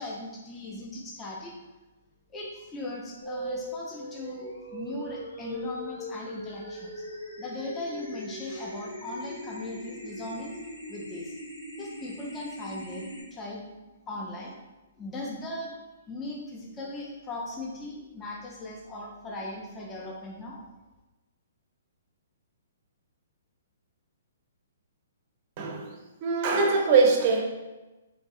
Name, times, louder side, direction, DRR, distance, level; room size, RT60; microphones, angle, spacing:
voice 1, 0.0-1.5 2.3-7.1 7.4-10.5 10.9-11.4 11.8-14.6 15.0-15.7 16.1-20.6, left 2 dB, 20° left, -2 dB, 0.5 m, -38 dB
sound 1, 3.2-13.2, equal, 80° left, 0.7 m, -39 dB
voice 2, 25.6-25.9 26.2-27.4, right 4 dB, 40° right, 1 dB, 0.5 m, -22 dB
3.1 x 2.6 x 2.3 m, 1.1 s
figure-of-eight pair, 125°, 0 cm